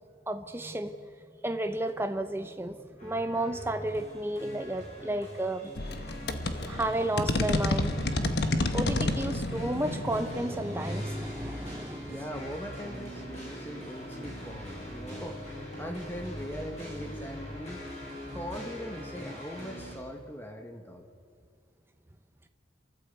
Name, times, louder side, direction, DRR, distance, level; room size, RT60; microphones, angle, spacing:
voice 1, 0.3-1.0 1.4-5.7 6.0-6.1 6.7-8.0 8.7-12.2 18.2-18.4, right 1 dB, 10° right, 7 dB, 0.9 m, -32 dB
sound 1, 3.0-19.9, equal, 35° left, 6.7 m, -43 dB
sound 2, 5.7-12.2, left 2 dB, 55° left, 1.2 m, -31 dB
voice 2, 12.0-17.9 18.3-21.0, equal, 10° left, 4 dB, 1.5 m, -41 dB
29.5 x 14.0 x 8.2 m, 2.1 s
head